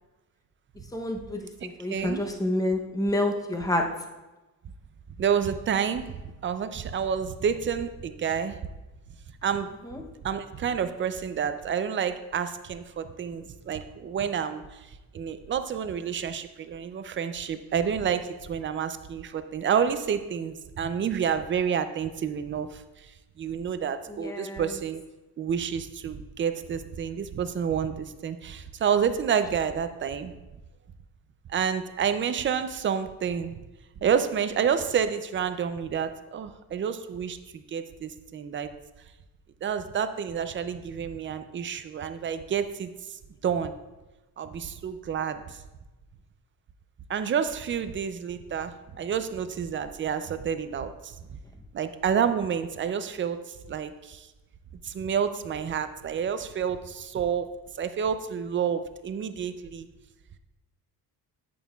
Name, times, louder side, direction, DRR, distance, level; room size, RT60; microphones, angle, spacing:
voice 1, 0.9-3.8 9.8-10.0 24.2-24.7, left 1 dB, 10° left, 3 dB, 0.7 m, -28 dB
voice 2, 1.9-2.2 5.2-8.6 9.4-9.7 10.2-14.9 15.1-22.8 23.4-25.0 25.4-30.3 31.5-33.6 34.0-38.7 39.6-43.8 44.4-45.6 47.1-51.4 51.7-54.3 54.8-59.9, right 7 dB, 35° right, 10 dB, 0.4 m, -29 dB
9.0 x 8.5 x 2.3 m, 1.1 s
cardioid pair, 140°, 37 cm